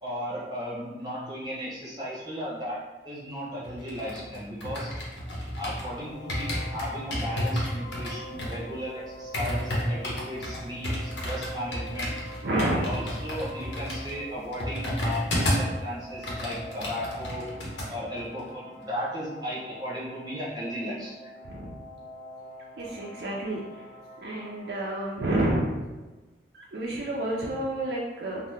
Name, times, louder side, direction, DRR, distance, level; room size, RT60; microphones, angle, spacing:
voice 1, 0.0-2.8 3.0-4.9 5.5-12.2 12.7-17.4 17.9-21.3, equal, 25° right, -7 dB, 0.9 m, -35 dB
sound 1, 3.6-5.9 6.3-15.8 16.1-17.9 18.2-18.4, equal, 80° left, 0.7 m, -31 dB
sound 2, 5.9-24.7, equal, 50° left, 0.6 m, -45 dB
voice 2, 12.4-13.1 21.4-21.7 22.8-23.8 24.2-25.7 26.5-28.4, right 1 dB, 60° right, -4 dB, 0.4 m, -29 dB
2.7 x 2.0 x 3.4 m, 1.2 s
head